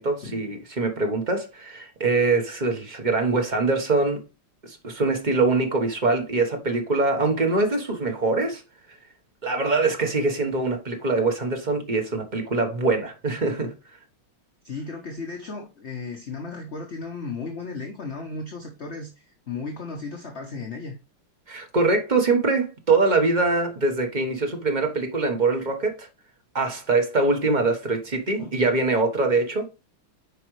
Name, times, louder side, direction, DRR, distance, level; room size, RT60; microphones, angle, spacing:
voice 1, 0.0-4.2 4.6-8.6 9.4-13.7 21.5-26.1 26.5-29.7, right 3 dB, 25° right, 1.1 m, -23 dB
voice 2, 14.6-21.0 27.8-27.9 28.4-28.6, left 4 dB, 45° left, 1.0 m, -35 dB
8.5 x 5.1 x 3.2 m
omnidirectional pair, 2.3 m